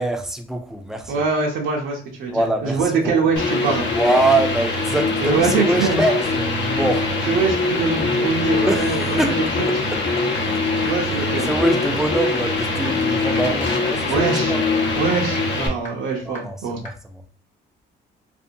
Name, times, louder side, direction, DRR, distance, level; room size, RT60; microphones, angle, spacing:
voice 1, 0.0-1.2 2.3-3.1 3.9-7.1 8.7-9.4 9.9-10.3 11.2-14.1 14.5-14.6 16.3-16.9, right 2 dB, ahead, 0.4 m, -23 dB
voice 2, 1.1-3.9 5.2-6.0 6.8-6.9 7.3-9.7 10.8-11.5 12.9-13.0 14.1-14.5 14.9-16.8, right 4 dB, 85° right, 0.7 m, -23 dB
sound 1, 3.4-15.7, left 3 dB, 65° left, 0.7 m, -22 dB
sound 2, 10.4-10.5 10.8-10.9 11.4-11.5 11.9-12.0 12.4-12.5 12.9-13.0 13.3-13.4 13.9-14.0 14.4-14.5 14.9-15.0 15.3-15.4 15.9-16.0 16.4-16.5 16.9-17.0, left 1 dB, 40° left, 1.0 m, -34 dB
2.6 x 2.1 x 2.6 m
cardioid pair, 90°, 20 cm